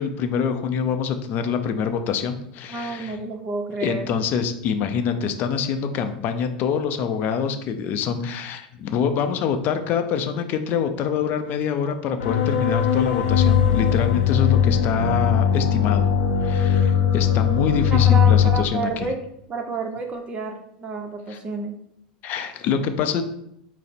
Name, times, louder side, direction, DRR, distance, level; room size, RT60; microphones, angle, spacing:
voice 1, 0.0-3.2 3.8-16.1 16.4-18.9 21.3-21.4 22.2-23.2, left 7 dB, 45° left, 7 dB, 0.5 m, -25 dB
voice 2, 2.7-4.1 17.9-19.2 19.5-21.8, right 3 dB, 25° right, 3 dB, 0.7 m, -30 dB
sound 1, 12.2-18.6, left 8 dB, 80° left, 0.8 m, -19 dB
4.9 x 2.0 x 4.3 m, 0.75 s
hypercardioid pair, 100°, 4 cm